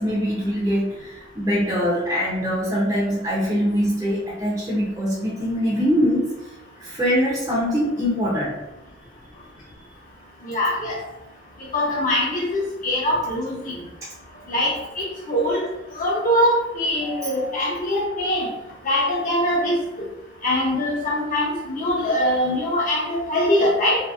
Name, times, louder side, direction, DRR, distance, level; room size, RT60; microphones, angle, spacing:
voice 1, 0.0-6.3 6.8-8.5, equal, 15° right, -7 dB, 0.5 m, -23 dB
voice 2, 10.4-11.0 11.7-13.8 14.5-15.6 15.9-18.5 18.8-19.7 20.4-24.0, left 1 dB, 40° left, -4 dB, 0.8 m, -22 dB
2.7 x 2.6 x 2.4 m, 0.97 s
head